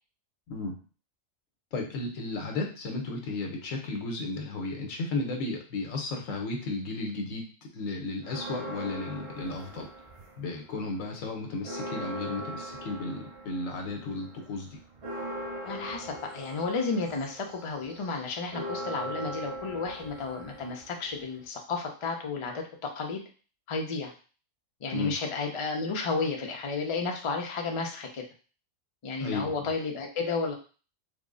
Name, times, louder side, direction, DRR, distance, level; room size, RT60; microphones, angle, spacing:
voice 1, 0.5-0.8 1.7-7.5 7.7-9.9 10.4-14.8 24.9-25.1 29.2-29.7, left 3 dB, 85° left, 2 dB, 1.2 m, -34 dB
sound 1, 8.2-10.6 11.0-21.5, right 1 dB, 35° right, 0.5 m, -40 dB
voice 2, 15.6-22.6 22.9-23.2 23.7-24.1 24.8-28.2 29.0-30.5, left 4 dB, 45° left, 2 dB, 0.4 m, -32 dB
3.5 x 2.0 x 3.7 m, 0.37 s
omnidirectional pair, 1.3 m